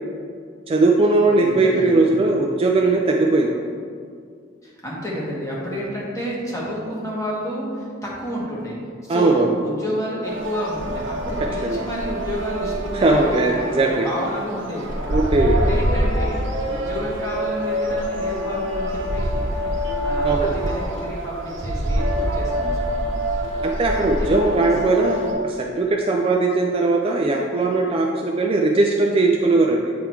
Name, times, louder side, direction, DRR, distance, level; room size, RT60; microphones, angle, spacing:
voice 1, 0.7-3.5 9.1-9.5 11.6-11.8 12.9-14.1 15.1-15.5 20.2-20.5 23.6-29.9, right 2 dB, 30° right, 1 dB, 0.4 m, -19 dB
voice 2, 1.3-2.2 4.6-8.7 9.0-14.9 15.4-16.4 16.7-23.1 24.0-24.8, equal, 15° left, -6 dB, 1.5 m, -30 dB
sound 1, 10.2-25.3, equal, 70° right, 1.0 m, -25 dB
8.4 x 3.9 x 4.5 m, 2.2 s
head